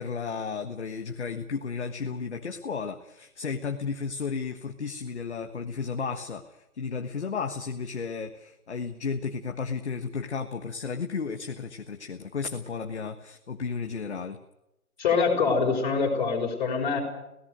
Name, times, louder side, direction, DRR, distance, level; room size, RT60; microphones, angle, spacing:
voice 1, 0.0-14.4, left 5 dB, 50° left, 5 dB, 1.5 m, -33 dB
voice 2, 15.0-17.0, left 5 dB, 30° left, 1 dB, 5.7 m, -24 dB
28.0 x 17.5 x 6.6 m, 0.91 s
figure-of-eight pair, 165°, 44 cm